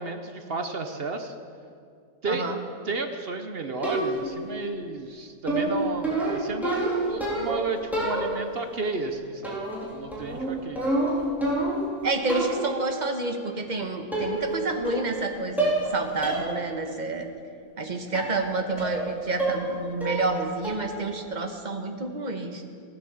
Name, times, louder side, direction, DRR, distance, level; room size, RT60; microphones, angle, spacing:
voice 1, 0.0-1.3 2.2-2.5 2.8-9.6 9.9-10.8, right 3 dB, 50° right, 7 dB, 0.9 m, -32 dB
voice 2, 2.3-2.6 12.0-17.3 17.8-22.6, right 3 dB, 35° right, 5 dB, 1.2 m, -29 dB
sound 1, 3.8-4.4 5.5-7.6 7.9-8.6 9.4-9.9 10.1-11.9 12.3-12.7 13.6-13.7 14.1-14.6 14.9-15.3 15.6-15.9 16.2-16.5 16.9-17.0 18.1-18.4 18.8-19.1 19.4-19.7 20.0-20.4 20.6-21.0, right 2 dB, ahead, 3.7 m, -28 dB
15.5 x 10.0 x 7.1 m, 2.3 s
omnidirectional pair, 1.6 m